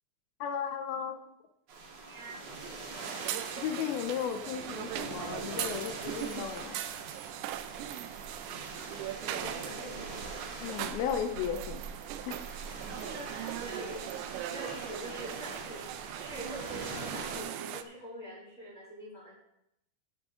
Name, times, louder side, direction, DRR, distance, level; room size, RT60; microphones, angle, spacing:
voice 1, 0.4-1.2 3.6-6.8 10.6-11.8 12.3-12.5, left 8 dB, 80° left, 7 dB, 2.2 m, -35 dB
sound 1, 1.7-17.4, right 3 dB, 50° right, 2.3 m, -43 dB
sound 2, 3.0-17.8, right 12 dB, 80° right, 2.4 m, -40 dB
voice 2, 9.3-10.2 13.0-14.2 14.5-15.9 16.1-19.3, right 1 dB, 20° left, -6 dB, 3.0 m, -44 dB
15.0 x 7.5 x 3.7 m, 0.79 s
omnidirectional pair, 5.0 m